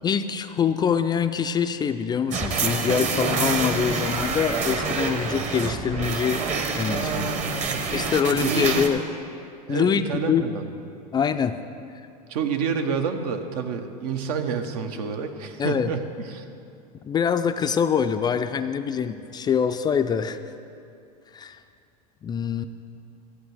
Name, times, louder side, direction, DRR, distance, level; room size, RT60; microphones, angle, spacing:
voice 1, 0.0-6.4 6.7-7.3 7.9-9.0 9.7-10.4 11.1-11.6 15.6-15.9 17.0-20.4 21.3-21.6 22.2-22.6, left 7 dB, 20° left, 9 dB, 0.3 m, -24 dB
sound 1, 2.3-8.9, right 4 dB, 35° right, 1.1 m, -27 dB
voice 2, 6.8-7.8 8.2-8.8 9.7-10.6 12.3-16.1 16.3-16.4, right 6 dB, 70° right, 7 dB, 1.0 m, -29 dB
14.0 x 8.0 x 4.9 m, 2.6 s
hypercardioid pair, 105°, 21 cm